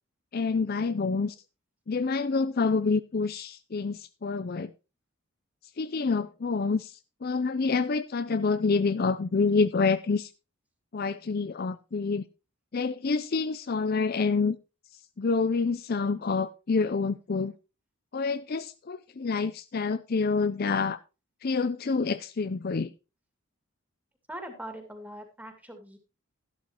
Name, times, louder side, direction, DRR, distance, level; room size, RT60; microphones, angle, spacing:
voice 1, 0.3-1.4 1.9-4.7 5.8-10.3 10.9-12.2 12.7-14.6 15.2-17.5 18.1-21.0 21.4-22.9, left 4 dB, 45° left, 0.5 m, -27 dB
voice 2, 24.3-26.0, right 1 dB, 5° right, 2.4 m, -42 dB
13.0 x 11.5 x 2.9 m
head